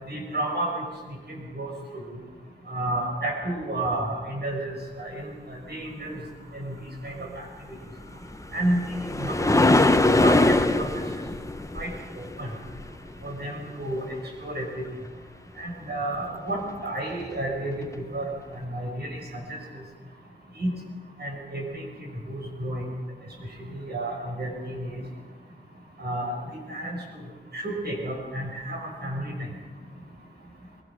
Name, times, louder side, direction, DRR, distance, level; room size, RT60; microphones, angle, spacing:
voice 1, 0.1-0.8 1.5-2.2 2.7-6.2 6.5-7.8 8.5-8.8 9.1-11.0 11.7-12.5 13.2-14.9 15.6-17.8 18.1-19.6 20.6-20.7 21.2-22.9 23.6-25.0 26.0-26.3 26.7-27.0 27.5-29.5, right 1 dB, 55° right, 0 dB, 6.2 m, -31 dB
sound 1, 8.1-13.3 17.2-17.3 17.9-18.0, left 2 dB, 15° left, 1.1 m, -22 dB
22.5 x 21.0 x 6.3 m, 1.5 s
cardioid pair, 75°, 20 cm